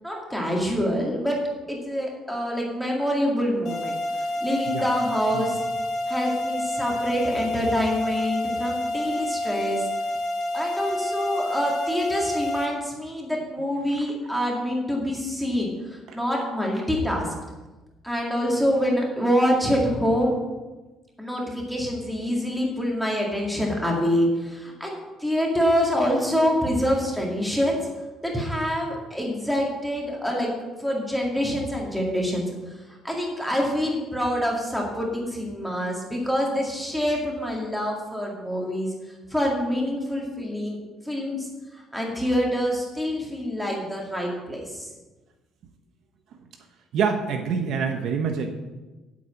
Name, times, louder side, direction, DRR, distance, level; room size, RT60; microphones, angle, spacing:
voice 1, 0.0-1.4 1.7-4.0 4.4-5.6 6.1-9.9 10.5-17.3 18.0-20.4 21.2-27.8 28.2-30.5 30.8-32.4 33.0-38.9 39.3-40.8 41.1-41.5 41.7-44.9, equal, ahead, -2 dB, 2.2 m, -26 dB
sound 1, 3.6-12.7, left 1 dB, 40° left, 3.1 m, -28 dB
voice 2, 46.9-48.5, right 6 dB, 55° right, 4 dB, 1.0 m, -26 dB
8.4 x 7.3 x 8.5 m, 1.2 s
cardioid pair, 175°, 0 cm